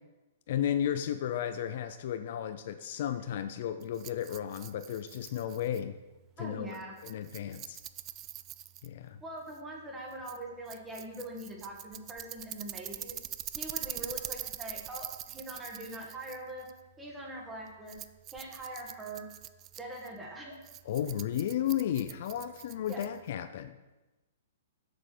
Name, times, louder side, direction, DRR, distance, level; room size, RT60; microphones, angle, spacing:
voice 1, 0.5-5.9 6.4-6.8 7.0-7.8 8.8-9.2 20.8-23.8, left 10 dB, 55° left, 10 dB, 0.5 m, -33 dB
Rattle, 3.8-23.4, right 13 dB, 25° right, 0.3 m, -44 dB
voice 2, 6.4-6.9 9.2-13.2 13.5-16.7 17.0-18.0 18.3-19.3 19.8-20.6 22.9-23.0, right 1 dB, 10° right, -1 dB, 1.8 m, -42 dB
7.7 x 6.2 x 6.7 m, 1.1 s
hypercardioid pair, 155°, 0 cm